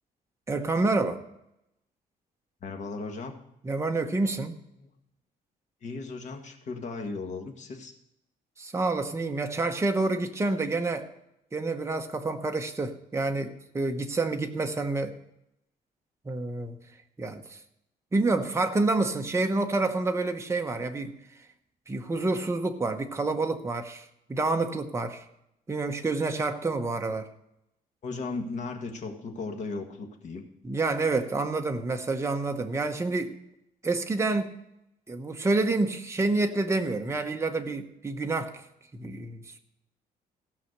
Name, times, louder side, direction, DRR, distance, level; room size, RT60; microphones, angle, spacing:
voice 1, 0.5-1.2 3.6-4.6 8.6-11.1 11.5-15.1 16.2-16.8 17.2-17.6 18.1-21.1 21.9-25.2 25.7-27.3 30.6-33.3 33.8-34.5 35.1-38.5 38.9-39.6, right 3 dB, 15° right, 5 dB, 1.0 m, -28 dB
voice 2, 2.6-3.3 4.8-4.9 5.8-7.9 28.0-30.4, left 3 dB, 45° left, 4 dB, 1.6 m, -36 dB
16.0 x 5.7 x 6.6 m, 0.83 s
cardioid pair, 150°, 17 cm